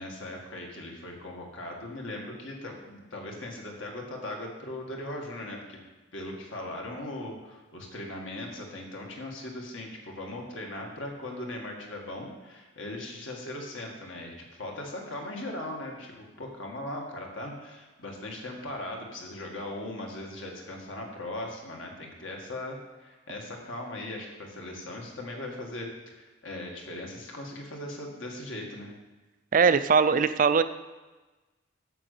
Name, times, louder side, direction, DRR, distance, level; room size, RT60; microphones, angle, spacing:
voice 1, 0.0-5.8 6.1-28.9, left 1 dB, 65° left, 0 dB, 1.8 m, -39 dB
voice 2, 29.5-30.6, right 5 dB, 40° right, 13 dB, 0.4 m, -21 dB
8.9 x 6.6 x 6.7 m, 1.2 s
head